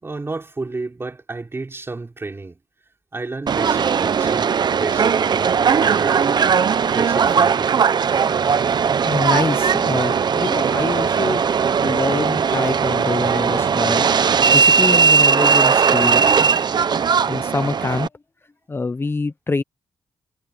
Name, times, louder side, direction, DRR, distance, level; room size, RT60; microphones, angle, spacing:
voice 1, 0.0-2.6 3.1-6.2 6.9-7.8, right 3 dB, 25° right, 3.6 m, -31 dB
Subway metro underground, 3.5-18.1, right 6 dB, 50° right, 0.7 m, -18 dB
voice 2, 9.0-11.4 11.8-14.1 14.5-16.6 17.3-18.1 18.7-19.6, left 3 dB, 25° left, 0.6 m, -25 dB
cardioid pair, 100°, 10 cm